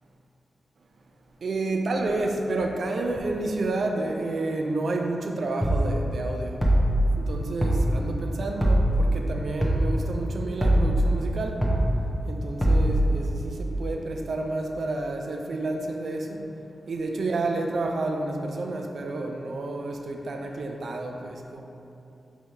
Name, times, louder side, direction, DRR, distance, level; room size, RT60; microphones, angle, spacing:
voice 1, 1.4-6.6 7.2-11.5 12.2-16.4 16.9-21.6, right 2 dB, 70° right, 3 dB, 0.4 m, -30 dB
sound 1, 5.6-5.8 6.6-7.0 7.6-7.8 8.6-9.0 9.6-9.8 10.6-11.0 11.6-11.8 12.6-13.0, right 1 dB, 5° left, 0.7 m, -21 dB
4.7 x 2.7 x 3.2 m, 2.9 s
cardioid pair, 50°, 0 cm